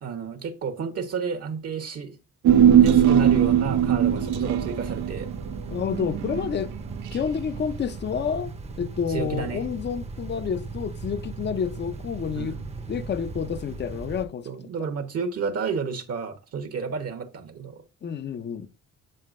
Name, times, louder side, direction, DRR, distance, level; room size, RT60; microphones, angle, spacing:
voice 1, 0.0-2.2 2.8-5.3 9.1-9.6 12.3-12.7 14.4-17.8, right 6 dB, 55° right, 1.0 m, -31 dB
Human voice, 2.4-7.1 7.4-7.5, right 9 dB, 75° right, 0.6 m, -20 dB
sound 1, 2.8-14.2, right 3 dB, 20° right, 0.7 m, -37 dB
voice 2, 5.7-6.7 7.1-8.5 8.8-12.6 12.9-14.5 18.0-18.7, left 7 dB, 35° left, 0.6 m, -29 dB
7.6 x 7.3 x 2.5 m
cardioid pair, 90°, 30 cm